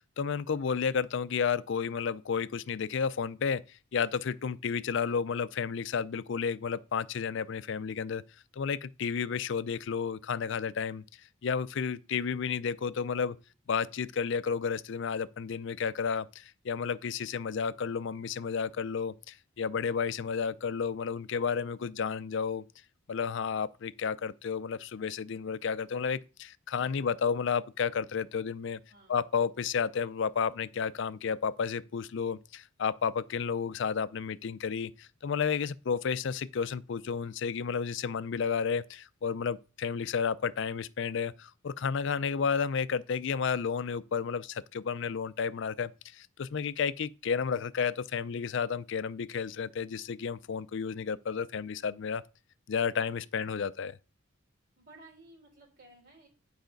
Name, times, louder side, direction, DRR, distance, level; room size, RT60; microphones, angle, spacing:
voice 1, 0.2-3.6 3.9-8.2 8.6-11.0 11.4-13.4 13.7-22.6 23.1-28.8 29.1-52.2 52.7-54.0, left 6 dB, 65° left, 0.4 m, -32 dB
voice 2, 28.9-29.3 53.0-53.1 53.4-53.6 54.8-56.3, right 2 dB, 55° right, 3.1 m, -56 dB
10.5 x 4.9 x 5.1 m
head